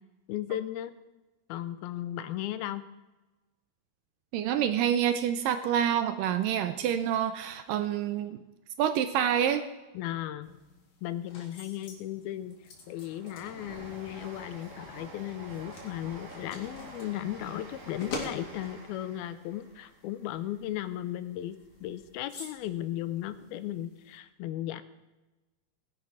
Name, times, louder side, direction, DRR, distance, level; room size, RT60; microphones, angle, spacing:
voice 1, 0.3-0.9 1.5-2.8 9.9-10.5 11.0-12.6 12.9-24.8, left 13 dB, 80° left, 13 dB, 2.5 m, -36 dB
voice 2, 4.3-8.4 8.8-9.6, right 9 dB, 75° right, 9 dB, 2.1 m, -27 dB
sound 1, 10.4-24.2, left 3 dB, 55° left, 3.8 m, -47 dB
Train, 11.9-22.0 22.4-23.4 23.6-23.7, right 2 dB, 40° right, 3.2 m, -49 dB
19.0 x 11.0 x 4.8 m, 1.1 s
omnidirectional pair, 4.4 m